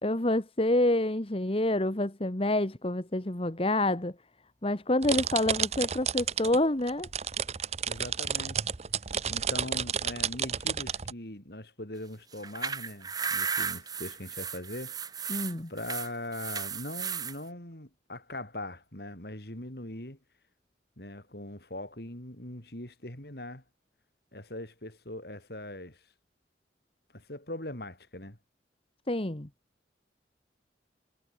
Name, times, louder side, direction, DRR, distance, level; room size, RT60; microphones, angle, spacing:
voice 1, 0.0-4.1 4.6-7.1 15.3-15.7 29.1-29.5, left 1 dB, 30° left, 1.4 m, -27 dB
sound 1, 5.0-6.6 6.9-11.1, right 8 dB, 35° right, 0.8 m, -31 dB
voice 2, 7.8-8.7 9.3-15.0 15.7-20.2 21.0-23.6 24.3-26.0 27.1-28.4, left 1 dB, 60° left, 4.7 m, -41 dB
sound 2, 12.3-17.4, right 6 dB, 20° right, 1.1 m, -34 dB
head